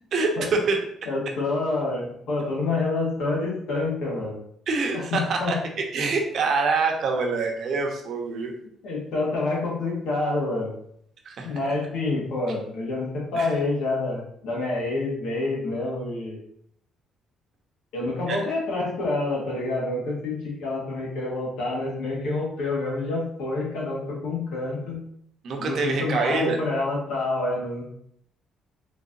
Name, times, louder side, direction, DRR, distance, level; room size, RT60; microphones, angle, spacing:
voice 1, 0.1-0.8 4.7-5.5 5.9-8.5 11.2-11.5 13.4-13.5 18.3-18.4 25.4-26.6, right 4 dB, 65° right, 2 dB, 0.8 m, -25 dB
voice 2, 1.1-4.4 4.9-5.6 8.8-10.7 11.4-16.4 17.9-25.0 25.6-27.8, left 2 dB, 80° left, -3 dB, 1.5 m, -27 dB
3.9 x 3.3 x 2.6 m, 0.69 s
cardioid pair, 80°, 0 cm